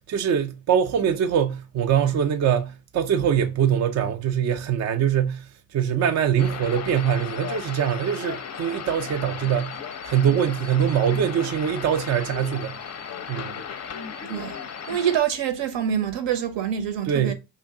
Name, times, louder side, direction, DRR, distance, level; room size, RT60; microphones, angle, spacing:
voice 1, 0.0-9.7 10.0-12.8 13.3-13.6 17.1-17.3, right 8 dB, 35° right, 0.4 m, -23 dB
sound 1, 6.4-15.2, left 7 dB, 35° left, 0.5 m, -35 dB
voice 2, 14.9-17.3, right 9 dB, 65° right, 0.8 m, -25 dB
2.7 x 2.5 x 3.5 m
supercardioid pair, 65°, 48 cm